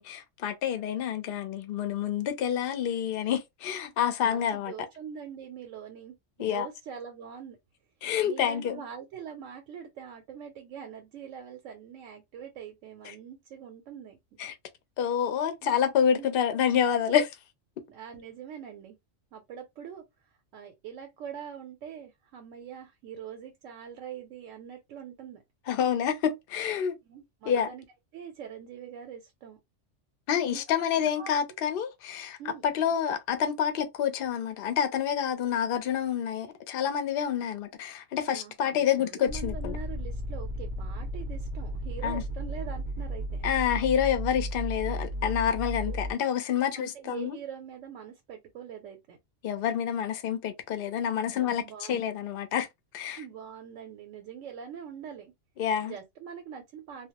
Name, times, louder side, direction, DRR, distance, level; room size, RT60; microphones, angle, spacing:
voice 1, 0.0-4.7 6.4-6.7 8.0-8.8 14.4-14.5 15.0-17.2 25.7-26.9 27.4-27.7 30.3-32.4 32.6-39.8 42.0-42.2 43.4-47.4 49.4-51.6 51.9-52.7 52.9-53.2 55.6-55.9, left 8 dB, 60° left, 0.7 m, -28 dB
voice 2, 4.2-7.6 8.2-14.5 15.6-15.7 16.2-16.3 17.1-17.2 17.9-19.0 19.3-25.4 27.0-27.9 28.1-29.6 30.5-30.6 30.9-31.3 32.4-32.7 38.3-43.5 45.8-46.0 46.8-49.2 51.2-52.0 53.2-55.3 55.8-57.1, right 8 dB, 90° right, 0.9 m, -43 dB
sound 1, 39.3-46.1, equal, 55° right, 0.6 m, -34 dB
2.2 x 2.0 x 2.8 m
omnidirectional pair, 1.3 m